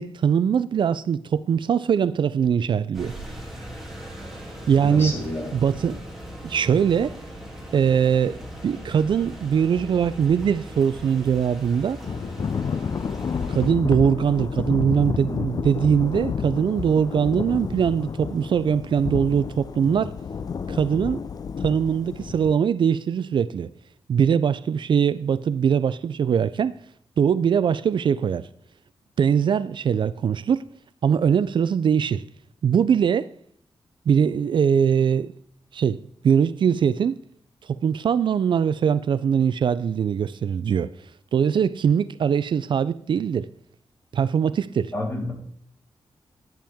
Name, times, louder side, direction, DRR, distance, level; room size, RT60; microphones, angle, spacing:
voice 1, 0.0-3.1 4.7-5.2 5.5-6.0 6.4-7.2 7.7-12.0 13.5-20.1 20.7-21.2 21.6-23.7 24.1-26.7 27.2-28.5 29.2-30.6 31.0-32.2 32.6-33.3 34.1-35.3 35.7-37.2 37.7-40.9 41.3-43.5 44.1-44.9, right 7 dB, 60° right, 0.4 m, -22 dB
sound 1, 2.9-13.7, equal, 5° right, 2.7 m, -39 dB
voice 2, 4.8-5.5 44.9-45.3, left 1 dB, 25° left, 3.6 m, -29 dB
Thunder / Rain, 12.0-22.6, left 6 dB, 45° left, 0.4 m, -30 dB
10.5 x 10.5 x 3.5 m
wide cardioid pair, 130°, 9 cm